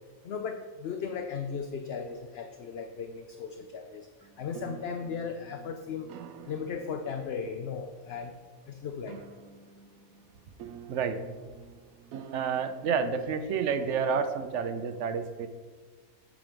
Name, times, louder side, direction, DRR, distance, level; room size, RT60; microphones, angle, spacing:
voice 1, 0.2-4.1 4.4-6.1 6.5-8.3 8.7-9.2, left 6 dB, 60° left, 6 dB, 0.7 m, -36 dB
sound 1, 4.2-14.7, right 8 dB, 90° right, 1.0 m, -49 dB
voice 2, 10.9-11.2 12.3-15.5, right 6 dB, 65° right, 10 dB, 0.9 m, -29 dB
8.9 x 5.1 x 5.1 m, 1.5 s
omnidirectional pair, 1.4 m